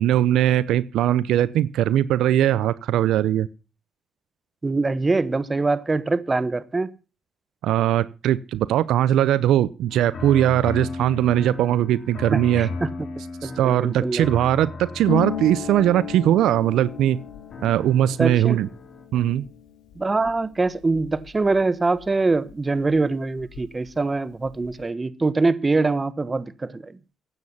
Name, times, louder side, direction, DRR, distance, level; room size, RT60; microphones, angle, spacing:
voice 1, 0.0-3.5 7.6-12.7 13.4-17.2 17.6-18.7 19.1-19.4, right 12 dB, 85° right, 0.7 m, -20 dB
voice 2, 4.6-6.9 12.3-12.9 13.4-14.3 18.2-18.6 19.9-26.9, right 3 dB, 25° right, 1.3 m, -23 dB
sound 1, 9.9-19.0, left 3 dB, 55° left, 3.9 m, -37 dB
Harp, 15.0-22.5 22.8-23.9 24.2-24.8, left 10 dB, 90° left, 3.2 m, -36 dB
15.0 x 9.4 x 5.6 m
cardioid pair, 90°, 0 cm